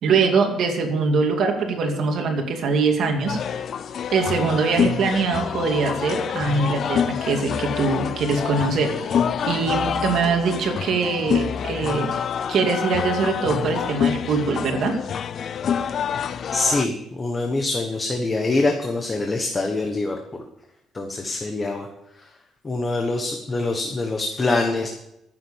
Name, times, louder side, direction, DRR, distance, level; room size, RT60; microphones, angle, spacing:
voice 1, 0.0-3.4 4.1-12.1 12.5-14.9, right 4 dB, 60° right, 3 dB, 2.4 m, -23 dB
sound 1, 3.3-16.9, left 7 dB, 45° left, 0.5 m, -26 dB
voice 2, 16.2-20.2 20.9-21.9 22.6-24.9, left 2 dB, 20° left, 3 dB, 1.2 m, -24 dB
14.0 x 7.5 x 7.3 m, 0.86 s
cardioid pair, 150°, 0 cm